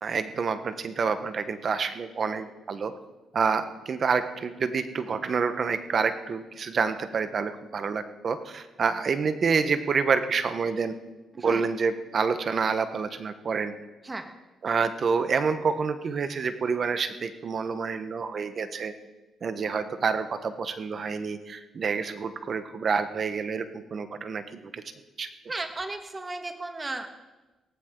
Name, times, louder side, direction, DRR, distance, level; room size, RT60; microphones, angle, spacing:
voice 1, 0.0-2.9 3.3-11.0 11.4-13.7 14.6-18.9 19.4-24.8 25.2-25.3, right 5 dB, 50° right, 10 dB, 1.2 m, -28 dB
voice 2, 25.5-27.1, right 2 dB, 25° right, 6 dB, 1.7 m, -34 dB
17.5 x 15.0 x 3.9 m, 1.1 s
cardioid pair, 75°, 0 cm